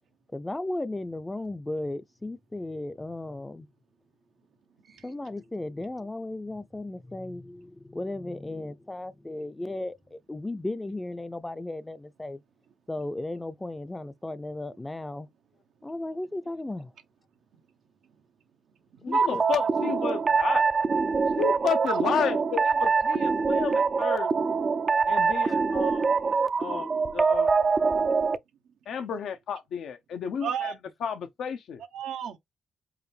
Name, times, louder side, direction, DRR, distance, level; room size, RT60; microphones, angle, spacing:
voice 1, 0.3-3.7 5.0-12.4 12.9-15.3 15.8-16.9 19.1-19.4, left 2 dB, 15° left, 0.5 m, -35 dB
voice 2, 19.0-20.6 21.4-24.3 25.1-26.1 26.6-27.5 28.9-30.7 31.0-31.8, left 7 dB, 80° left, 0.8 m, -32 dB
sound 1, 19.1-28.4, right 5 dB, 45° right, 0.4 m, -24 dB
voice 3, 30.4-30.7 31.9-32.4, right 8 dB, 85° right, 0.8 m, -32 dB
4.9 x 2.2 x 3.3 m
cardioid pair, 75°, 0 cm